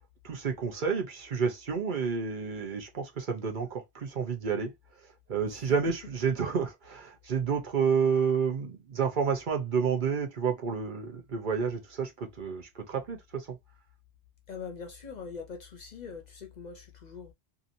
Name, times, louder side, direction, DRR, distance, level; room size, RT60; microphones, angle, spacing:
voice 1, 0.2-13.6, right 6 dB, 55° right, 0.8 m, -30 dB
voice 2, 14.5-17.3, left 5 dB, 50° left, 0.7 m, -42 dB
2.8 x 2.5 x 2.5 m
omnidirectional pair, 1.0 m